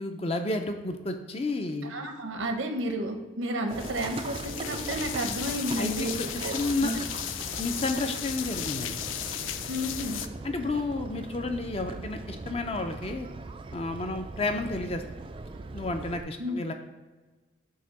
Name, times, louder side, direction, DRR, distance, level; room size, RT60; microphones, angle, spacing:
voice 1, 0.0-1.9 5.8-6.9 7.6-9.0 10.4-13.3 13.7-15.0 15.7-16.7, left 2 dB, 30° left, 6 dB, 0.5 m, -31 dB
voice 2, 1.8-6.5 6.8-7.0 9.7-10.2 16.4-16.6, right 1 dB, 85° right, 5 dB, 0.9 m, -31 dB
sound 1, 3.7-10.3, left 10 dB, 90° left, 0.4 m, -36 dB
Livestock farm animals working animals, 3.7-16.2, right 3 dB, 25° right, 0.3 m, -40 dB
7.9 x 2.9 x 5.3 m, 1.3 s
head